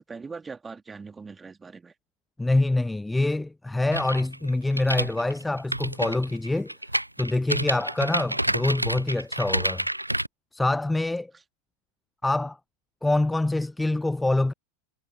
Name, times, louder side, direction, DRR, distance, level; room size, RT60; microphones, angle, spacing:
voice 1, 0.0-1.9 11.3-11.4, right 4 dB, 15° right, 2.9 m, -41 dB
voice 2, 2.4-6.7 7.2-9.8 10.5-11.3 12.2-12.6 13.0-14.5, left 2 dB, 5° left, 0.4 m, -25 dB
sound 1, 3.9-10.3, right 1 dB, 85° right, 0.3 m, -29 dB
figure-of-eight pair, 90°, 0 cm